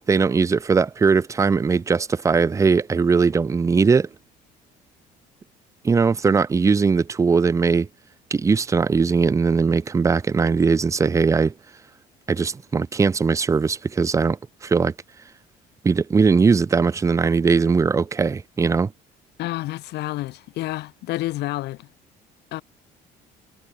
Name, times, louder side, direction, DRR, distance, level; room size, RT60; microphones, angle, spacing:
voice 1, 0.1-4.1 5.8-7.9 8.3-11.5 12.3-14.9 15.8-18.9, right 5 dB, 20° right, 0.5 m, -20 dB
voice 2, 19.4-21.9 22.5-22.6, left 17 dB, 80° left, 1.8 m, -29 dB
cardioid pair, 110°, 17 cm